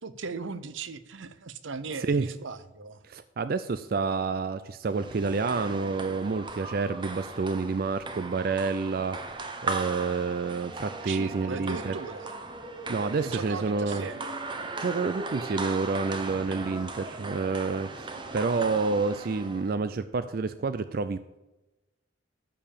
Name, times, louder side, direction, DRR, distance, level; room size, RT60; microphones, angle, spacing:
voice 1, 0.0-3.0 11.1-12.3 13.2-14.4, right 4 dB, 80° right, 14 dB, 0.8 m, -38 dB
voice 2, 3.0-11.9 12.9-14.0 14.8-21.2, right 4 dB, 50° right, 12 dB, 0.4 m, -29 dB
sound 1, 4.9-19.8, right 3 dB, 25° right, 0.9 m, -37 dB
14.0 x 4.7 x 7.2 m, 1.0 s
head